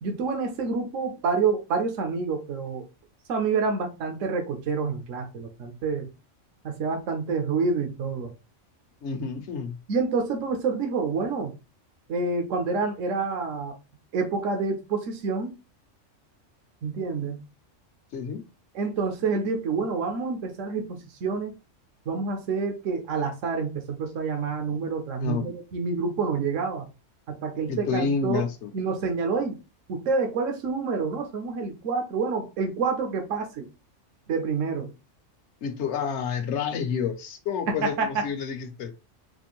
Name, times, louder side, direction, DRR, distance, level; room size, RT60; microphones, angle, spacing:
voice 1, 0.0-2.9 3.3-6.1 6.6-8.3 9.9-11.5 12.1-13.8 14.1-15.6 16.8-17.4 18.7-21.5 22.1-26.8 27.3-28.5 28.7-29.6 29.9-33.7 34.3-34.9 37.7-38.3, right 4 dB, 80° right, 1.1 m, -28 dB
voice 2, 9.0-9.8 18.1-18.4 25.2-25.5 27.7-28.7 35.6-38.9, left 6 dB, 65° left, 1.0 m, -29 dB
4.3 x 2.5 x 2.9 m
omnidirectional pair, 1.3 m